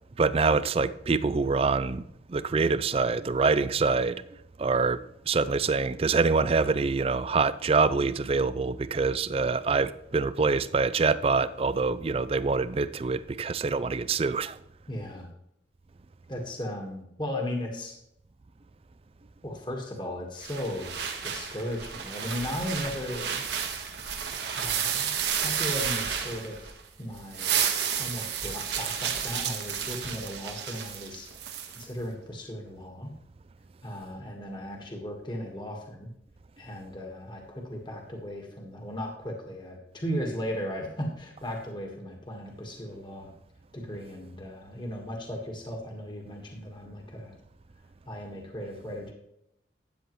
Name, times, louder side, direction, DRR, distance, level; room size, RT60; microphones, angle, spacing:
voice 1, 0.2-2.0 2.3-4.2 4.6-14.6, right 4 dB, 30° right, 0.4 m, -25 dB
voice 2, 14.9-15.3 16.3-18.0 19.4-20.9 21.2-23.4 24.5-25.1 25.4-27.7 28.0-31.3 31.7-33.1 33.8-36.1 36.6-43.3 43.7-47.3 48.1-49.1, equal, 25° left, 1.5 m, -36 dB
sound 1, 20.4-26.8 27.2-31.8, right 8 dB, 70° right, 1.3 m, -31 dB
12.5 x 8.5 x 3.1 m
head